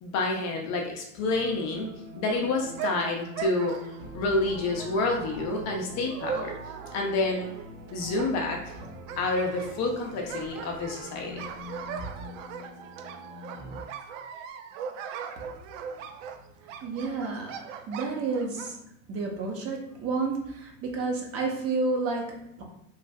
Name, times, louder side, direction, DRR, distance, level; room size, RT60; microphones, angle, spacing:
voice 1, 0.0-3.7 4.1-6.5 6.9-7.5 7.9-8.6 9.2-11.4, left 2 dB, 40° left, 0 dB, 0.6 m, -28 dB
sound 1, 1.2-13.8, equal, 10° right, 0.9 m, -45 dB
sound 2, 2.3-18.8, right 7 dB, 65° right, 0.5 m, -40 dB
voice 2, 16.6-17.5 17.9-18.8 19.1-22.6, right 3 dB, 35° right, 0 dB, 0.8 m, -30 dB
3.2 x 2.4 x 2.3 m, 0.77 s
hypercardioid pair, 100°, 42 cm